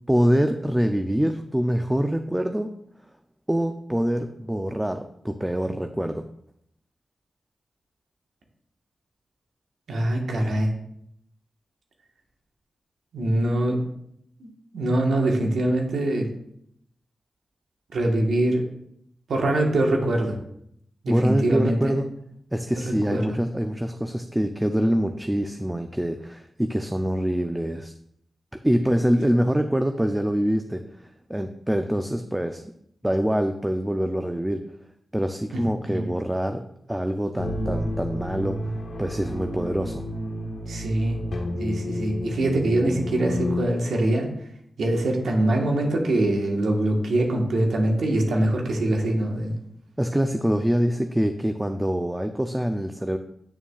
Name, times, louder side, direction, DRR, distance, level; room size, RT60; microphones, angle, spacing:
voice 1, 0.1-2.7 3.5-6.2 21.1-22.1 22.5-27.9 28.6-32.6 33.0-34.6 35.1-36.6 36.9-38.6 39.0-40.0 50.0-53.2, equal, 10° right, 7 dB, 0.5 m, -25 dB
voice 2, 9.9-10.7 13.1-13.8 14.4-16.3 17.9-18.6 19.3-20.4 21.0-21.9 22.8-23.4 35.5-36.0 40.7-41.2 41.6-44.3 44.8-49.6, right 1 dB, 80° right, 1 dB, 1.4 m, -23 dB
sound 1, 37.4-43.6, left 1 dB, 70° left, 1.3 m, -30 dB
8.7 x 6.9 x 2.4 m, 0.73 s
supercardioid pair, 40°, 0 cm